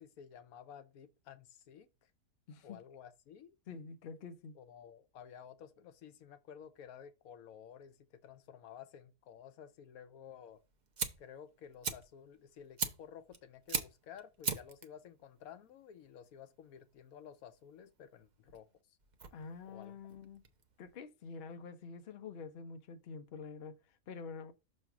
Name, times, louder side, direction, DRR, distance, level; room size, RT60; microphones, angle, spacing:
voice 1, 0.0-1.9 2.6-3.6 4.5-10.6 11.2-18.7 19.6-20.0, left 8 dB, 85° left, 1.1 m, -53 dB
voice 2, 2.5-2.8 3.7-4.6 19.3-20.4 20.8-24.5, left 5 dB, 55° left, 0.8 m, -47 dB
Fire, 10.5-21.0, right 5 dB, 45° right, 0.6 m, -42 dB
6.3 x 3.2 x 5.7 m
omnidirectional pair, 1.5 m